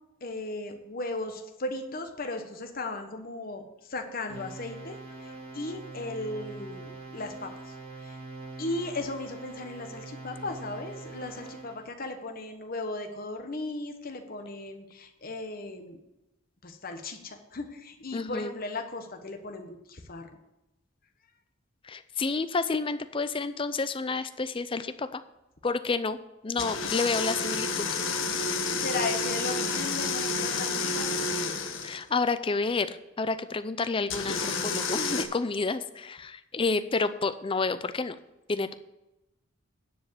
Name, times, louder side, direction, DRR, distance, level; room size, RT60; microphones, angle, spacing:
voice 1, 0.2-8.2 8.6-16.0 16.6-20.3 28.7-31.2, left 2 dB, 45° left, 5 dB, 1.2 m, -36 dB
sound 1, 4.3-11.9, right 3 dB, 65° right, 2.3 m, -43 dB
voice 2, 18.1-18.5 21.8-25.2 25.6-26.2 26.4-27.9 31.8-38.2 38.5-38.7, left 4 dB, 25° left, 12 dB, 0.5 m, -29 dB
sound 2, 26.6-32.0 34.1-35.2, left 4 dB, 70° left, 1.1 m, -30 dB
10.0 x 4.8 x 7.9 m, 0.93 s
head